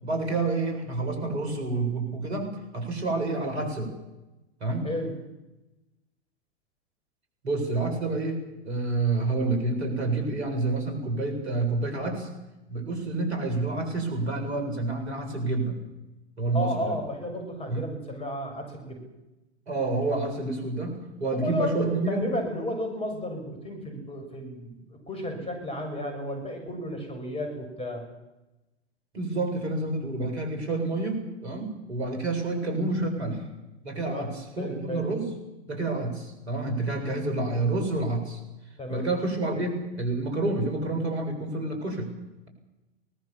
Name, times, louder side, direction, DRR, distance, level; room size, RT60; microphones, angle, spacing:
voice 1, 0.0-3.9 4.6-4.9 7.4-12.3 12.7-15.8 16.4-17.0 17.7-17.9 19.7-22.2 29.1-33.5 33.8-35.3 35.7-38.4 38.9-42.1, right 2 dB, 70° right, 4 dB, 7.5 m, -28 dB
voice 2, 16.5-19.0 21.3-28.1 34.0-34.3 34.6-35.1 38.8-39.0, left 1 dB, 15° left, 4 dB, 7.0 m, -33 dB
23.5 x 19.5 x 7.4 m, 0.99 s
figure-of-eight pair, 100°, 34 cm